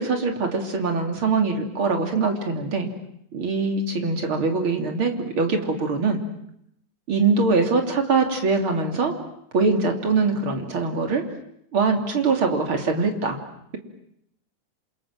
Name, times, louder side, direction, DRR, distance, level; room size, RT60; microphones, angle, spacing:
voice 1, 0.0-2.9 3.3-6.2 7.1-9.1 9.5-11.2 11.7-13.4, right 4 dB, 40° right, 3 dB, 3.8 m, -23 dB
28.0 x 27.5 x 7.6 m, 0.76 s
omnidirectional pair, 3.5 m